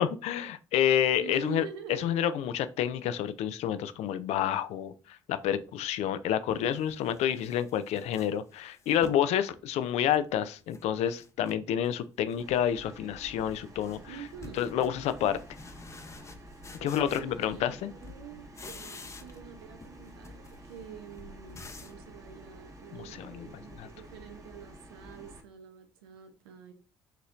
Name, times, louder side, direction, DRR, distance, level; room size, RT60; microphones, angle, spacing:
voice 1, 0.0-1.7 2.0-14.0 14.6-15.4 16.8-17.9 22.9-23.5 23.8-23.9, left 10 dB, 60° left, 0.4 m, -29 dB
voice 2, 1.2-2.1 14.1-14.7 16.8-26.7, right 8 dB, 80° right, 0.8 m, -46 dB
sound 1, 5.8-5.9 6.5-9.3 9.7-10.8 11.1-12.0 12.3-12.7 13.0-17.8 18.0-19.5 19.8-22.0, left 3 dB, 20° left, 0.7 m, -50 dB
sound 2, 12.4-25.4, right 1 dB, 25° right, 1.1 m, -50 dB
5.7 x 3.0 x 2.5 m
hypercardioid pair, 55°, 13 cm